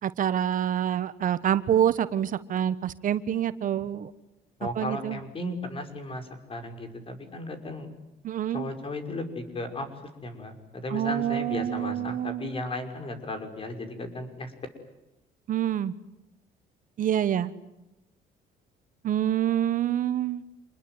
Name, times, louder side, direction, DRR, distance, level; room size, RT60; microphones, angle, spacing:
voice 1, 0.0-4.1 4.8-5.2 8.2-8.7 10.9-12.5 15.5-15.9 17.0-17.5 19.0-20.4, right 10 dB, 50° right, 14 dB, 1.2 m, -26 dB
voice 2, 4.6-7.9 8.5-9.9 10.2-14.5, left 1 dB, 35° left, 7 dB, 5.7 m, -35 dB
28.0 x 21.5 x 9.6 m, 0.95 s
cardioid pair, 110°, 17 cm